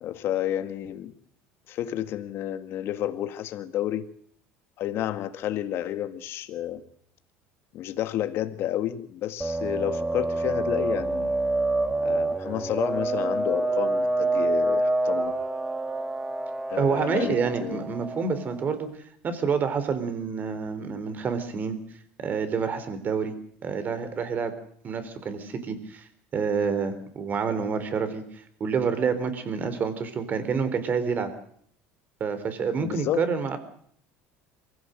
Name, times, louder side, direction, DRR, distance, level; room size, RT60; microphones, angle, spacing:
voice 1, 0.0-1.1 1.7-4.1 4.8-6.8 7.7-11.3 12.0-15.4 16.7-17.8 32.8-33.3, left 12 dB, 55° left, 11 dB, 1.8 m, -30 dB
sound 1, 9.4-18.7, right 2 dB, 10° right, 1.5 m, -27 dB
voice 2, 16.8-18.9 19.2-21.8 22.2-23.4 23.6-24.5 24.8-26.1 26.3-31.3 32.2-33.6, right 5 dB, 35° right, 10 dB, 3.7 m, -28 dB
23.5 x 15.5 x 7.9 m, 0.63 s
supercardioid pair, 115°, 5 cm